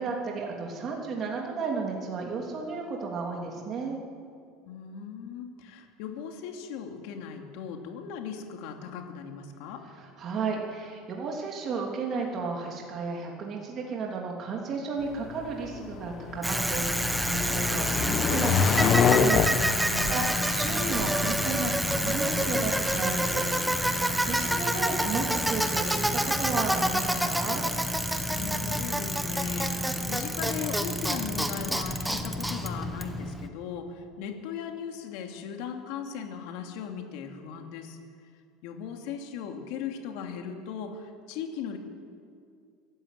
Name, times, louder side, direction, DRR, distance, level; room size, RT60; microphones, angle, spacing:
voice 1, 0.0-4.0 10.0-23.8 24.3-27.6, right 4 dB, 30° right, 0 dB, 3.0 m, -33 dB
voice 2, 4.7-9.8 19.9-20.6 28.3-38.0 38.6-41.8, left 7 dB, 65° left, 3 dB, 2.7 m, -38 dB
sound 1, 15.0-24.4, left 6 dB, 30° left, 1.1 m, -29 dB
Bicycle, 16.4-33.5, equal, ahead, 1.1 m, -28 dB
23.5 x 13.0 x 9.4 m, 2.3 s
supercardioid pair, 155°, 0 cm